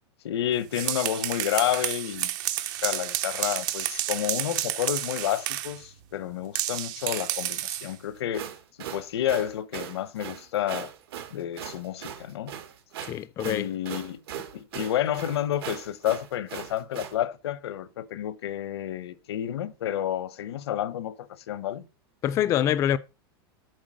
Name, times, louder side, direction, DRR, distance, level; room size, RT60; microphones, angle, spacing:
voice 1, 0.2-2.3 2.8-8.4 8.8-10.9 11.3-12.6 13.4-21.2 21.5-21.8, left 11 dB, 90° left, 0.9 m, -30 dB
sound 1, 0.6-5.8 6.5-7.9, right 13 dB, 50° right, 0.7 m, -30 dB
sound 2, 8.2-17.2, right 10 dB, 70° right, 1.5 m, -39 dB
voice 2, 13.1-13.7 22.2-23.0, left 11 dB, 25° left, 0.4 m, -25 dB
7.9 x 4.1 x 6.4 m
supercardioid pair, 155°, 13 cm